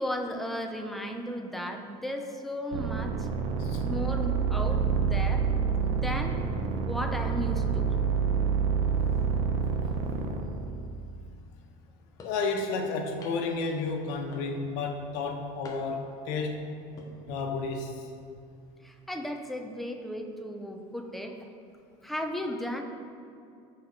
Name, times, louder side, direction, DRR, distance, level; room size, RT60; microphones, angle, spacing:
voice 1, 0.0-3.3 3.8-5.5 5.8-6.4 6.9-7.8 18.8-21.4 22.0-22.8, equal, ahead, 3 dB, 0.4 m, -35 dB
sound 1, 2.7-11.2, right 6 dB, 60° right, 0.7 m, -28 dB
voice 2, 12.2-16.6 17.2-18.1, left 4 dB, 65° left, 2 dB, 1.1 m, -32 dB
sound 2, 12.2-12.5 13.2-13.6 14.3-14.8 15.6-16.1 16.8-17.1, left 3 dB, 20° left, 0.7 m, -48 dB
12.5 x 4.4 x 3.9 m, 2.5 s
cardioid pair, 180°, 17 cm